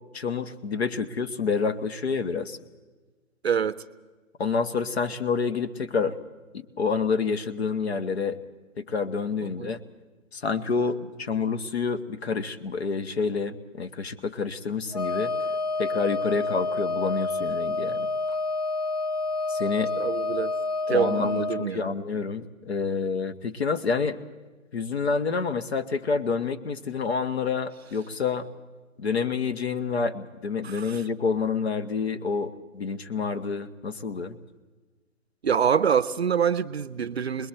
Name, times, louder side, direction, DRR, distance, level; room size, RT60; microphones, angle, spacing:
voice 1, 0.1-2.6 4.4-6.2 6.5-8.4 8.8-9.8 10.3-15.3 15.8-18.1 19.5-19.9 20.9-24.2 24.7-28.5 29.0-34.4, left 5 dB, 50° left, 1.2 m, -28 dB
voice 2, 3.4-3.8 9.4-9.8 20.0-20.5 20.9-21.9 30.6-31.0 35.4-37.5, right 7 dB, 50° right, 0.6 m, -26 dB
Wind instrument woodwind instrument, 14.9-21.7, left 3 dB, 30° left, 0.5 m, -28 dB
28.0 x 21.5 x 4.4 m
figure-of-eight pair, 155°, 41 cm